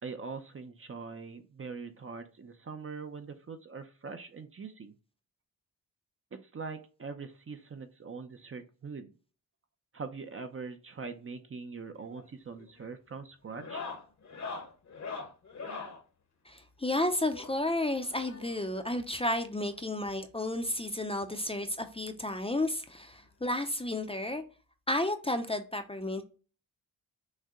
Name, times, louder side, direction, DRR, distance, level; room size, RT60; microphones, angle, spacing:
voice 1, 0.0-4.9 6.3-9.1 9.9-13.9, right 4 dB, 35° right, 0.6 m, -42 dB
sound 1, 11.9-12.3 12.6-12.9 13.5-16.0 17.3-18.7 19.7-19.8 20.1-20.2 20.6-20.7 22.0-22.1 23.4-23.5, left 4 dB, 45° left, 0.9 m, -42 dB
voice 2, 16.5-24.4 24.9-26.2, left 1 dB, 15° left, 0.6 m, -32 dB
6.4 x 2.1 x 3.7 m
cardioid pair, 85°, 37 cm